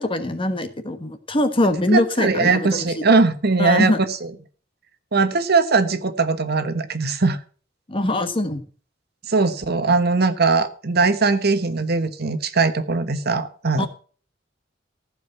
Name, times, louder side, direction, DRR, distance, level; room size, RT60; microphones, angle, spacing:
voice 1, 0.0-3.0 3.6-4.0 7.9-8.6 13.8-13.9, left 1 dB, 30° left, 9 dB, 1.3 m, -22 dB
voice 2, 1.9-3.9 4.2-4.3 5.1-7.4 9.3-13.9, right 4 dB, 55° right, 10 dB, 1.2 m, -20 dB
15.0 x 5.1 x 7.8 m, 0.41 s
head